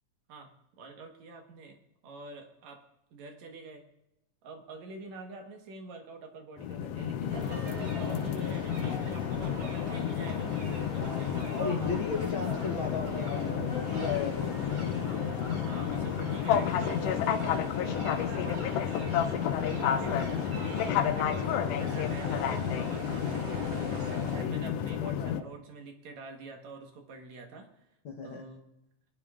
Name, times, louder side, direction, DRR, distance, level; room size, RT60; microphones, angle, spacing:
voice 1, 0.3-1.8 2.0-2.8 3.1-3.9 4.4-11.7 15.6-19.0 19.8-27.8 28.2-28.7, right 3 dB, 70° right, 3 dB, 2.5 m, -47 dB
sound 1, 6.6-25.4, left 9 dB, 80° left, 1.4 m, -31 dB
sound 2, 7.3-24.4, right 1 dB, 55° right, 3.3 m, -41 dB
voice 2, 11.0-14.6 24.3-24.5 25.0-25.5 28.0-28.4, left 5 dB, 60° left, 1 dB, 1.4 m, -36 dB
23.5 x 10.5 x 2.4 m, 0.87 s
omnidirectional pair, 3.4 m